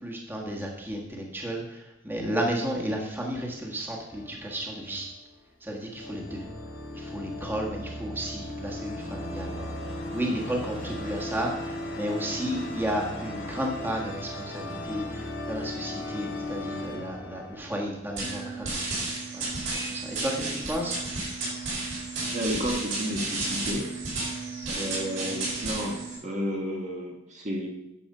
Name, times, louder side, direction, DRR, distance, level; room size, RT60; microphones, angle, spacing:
voice 1, 0.0-5.1 5.6-6.4 6.9-18.8 19.3-19.4 19.7-21.0 25.2-25.4, equal, 10° right, -1 dB, 1.5 m, -33 dB
sound 1, 4.1-5.3 5.9-18.6, left 1 dB, 60° left, 2.2 m, -37 dB
sound 2, 18.2-26.2, right 2 dB, 65° right, 4.3 m, -32 dB
voice 2, 22.3-23.9 24.7-27.7, equal, 35° right, 0 dB, 1.4 m, -32 dB
10.0 x 6.9 x 5.5 m, 0.92 s
head